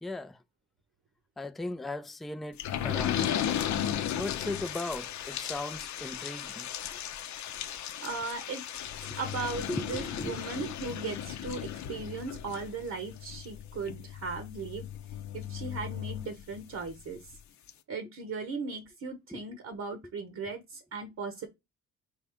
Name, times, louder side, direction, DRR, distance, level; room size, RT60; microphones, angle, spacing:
voice 1, 0.0-0.4 1.4-3.3 4.1-7.0 9.7-10.4 19.3-19.4, left 2 dB, ahead, 0.3 m, -37 dB
sound 1, 2.6-16.9 17.3-17.4 17.7-17.8, left 10 dB, 70° left, 0.7 m, -36 dB
voice 2, 8.0-8.6 9.2-14.9 15.3-17.3 17.9-21.5, right 4 dB, 60° right, 1.0 m, -37 dB
4.7 x 2.6 x 3.4 m
cardioid pair, 90°, 30 cm